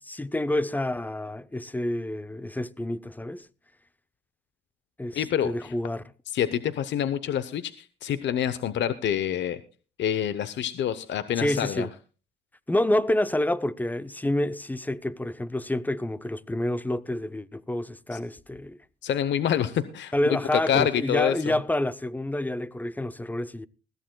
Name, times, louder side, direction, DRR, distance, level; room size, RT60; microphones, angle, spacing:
voice 1, 0.1-3.5 5.0-5.2 5.4-6.0 11.4-11.9 12.7-18.8 20.1-23.7, left 1 dB, 10° left, 0.5 m, -28 dB
voice 2, 5.1-5.7 6.3-9.6 10.0-11.9 18.1-18.2 19.0-21.5, left 9 dB, 65° left, 0.8 m, -27 dB
20.5 x 14.5 x 2.2 m
cardioid pair, 90°, 20 cm